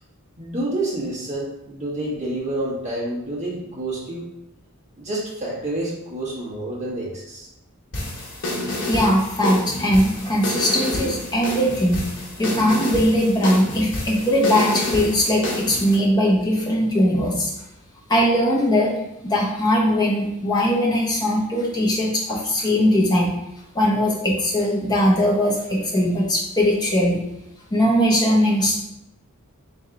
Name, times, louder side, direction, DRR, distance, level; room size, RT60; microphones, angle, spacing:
voice 1, 0.4-4.2 5.0-7.5, right 1 dB, 35° right, -7 dB, 1.4 m, -28 dB
sound 1, 7.9-16.0, left 1 dB, 60° left, 1.1 m, -28 dB
voice 2, 8.9-12.0 12.4-17.5 18.1-18.9 19.2-23.3 23.7-27.2 27.7-28.9, equal, 20° left, -3 dB, 0.9 m, -20 dB
3.5 x 3.2 x 3.8 m, 0.89 s
head